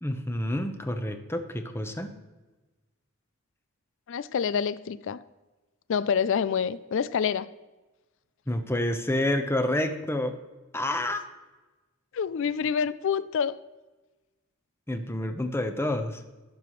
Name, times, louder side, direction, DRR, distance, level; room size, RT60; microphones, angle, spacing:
voice 1, 0.0-2.1 8.5-10.4 10.7-11.2 14.9-16.2, left 1 dB, 10° left, 7 dB, 0.9 m, -28 dB
voice 2, 4.1-5.2 5.9-7.5 12.1-13.6, left 7 dB, 65° left, 16 dB, 0.4 m, -27 dB
17.0 x 6.8 x 3.1 m, 1.2 s
head